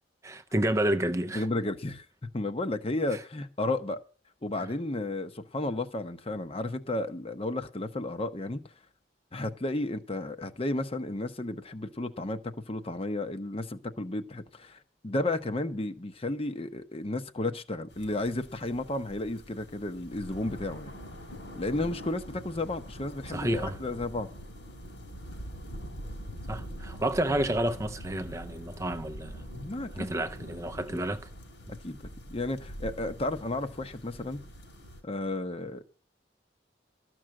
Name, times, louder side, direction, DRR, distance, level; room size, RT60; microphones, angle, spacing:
voice 1, 0.2-1.5 23.3-23.8 26.5-29.4 30.0-31.3, right 1 dB, 15° right, 0.5 m, -30 dB
voice 2, 1.3-2.0 2.3-4.0 4.4-8.6 9.3-20.9 21.6-24.3 29.5-30.1 31.8-34.4 35.0-35.9, left 2 dB, 35° left, 0.8 m, -33 dB
sound 1, 17.9-35.0, equal, 85° left, 4.7 m, -44 dB
13.0 x 6.2 x 7.6 m
head